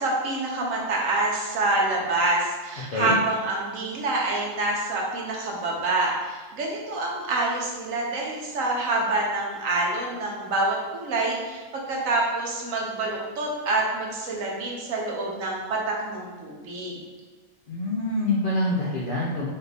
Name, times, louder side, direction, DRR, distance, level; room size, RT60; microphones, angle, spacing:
voice 1, 0.0-17.0, right 2 dB, 75° right, -2 dB, 1.2 m, -27 dB
voice 2, 17.7-19.5, left 1 dB, 60° left, -5 dB, 0.6 m, -25 dB
4.3 x 2.5 x 3.3 m, 1.3 s
omnidirectional pair, 1.4 m